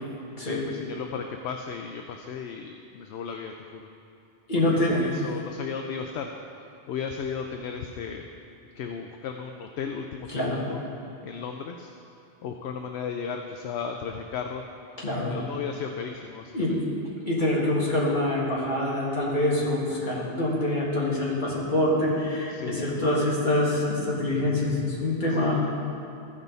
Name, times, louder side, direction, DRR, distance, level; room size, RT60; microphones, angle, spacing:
voice 1, 0.4-3.9 4.9-6.3 6.9-8.3 8.8-10.8 11.2-11.9 12.4-14.6 15.3-16.8 20.0-20.3 22.5-22.8 25.4-25.6, left 6 dB, 70° left, 4 dB, 0.8 m, -35 dB
voice 2, 4.5-5.0 10.3-10.6 15.0-15.3 16.5-16.7 17.3-25.6, left 1 dB, 45° left, -6 dB, 2.1 m, -25 dB
15.0 x 5.5 x 4.0 m, 2.6 s
omnidirectional pair, 1.2 m